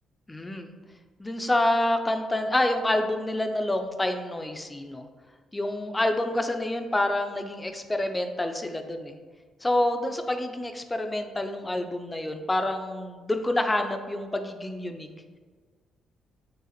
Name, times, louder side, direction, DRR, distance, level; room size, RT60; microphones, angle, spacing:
voice 1, 0.3-0.7 1.2-5.1 5.5-9.2 9.6-15.1, left 1 dB, 15° left, 6 dB, 0.3 m, -27 dB
4.7 x 2.5 x 2.9 m, 1.5 s
cardioid pair, 90°, 0 cm